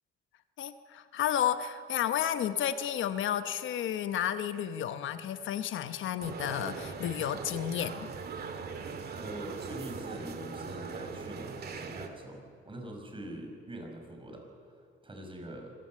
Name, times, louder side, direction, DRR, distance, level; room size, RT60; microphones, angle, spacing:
voice 1, 0.6-8.0, left 10 dB, 75° left, 10 dB, 1.0 m, -32 dB
sound 1, 6.2-12.1, right 5 dB, 50° right, 2.2 m, -40 dB
voice 2, 9.2-14.8 15.0-15.7, right 1 dB, 25° right, 2 dB, 5.7 m, -43 dB
25.5 x 16.0 x 7.5 m, 2.3 s
cardioid pair, 90°, 20 cm